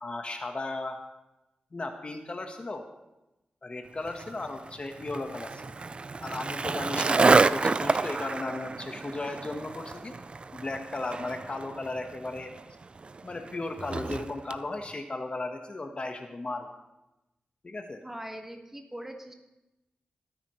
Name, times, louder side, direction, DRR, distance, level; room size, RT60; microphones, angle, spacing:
voice 1, 0.0-1.0 1.7-2.8 3.6-5.8 6.2-7.2 7.5-10.1 10.5-12.5 13.2-16.7 17.6-18.0, left 2 dB, 40° left, 5 dB, 1.2 m, -35 dB
Skateboard, 4.1-14.6, right 4 dB, 35° right, 0.3 m, -29 dB
voice 2, 18.0-19.3, right 1 dB, 10° right, 3 dB, 1.5 m, -41 dB
22.0 x 9.3 x 3.1 m, 0.96 s
wide cardioid pair, 90°, 3 cm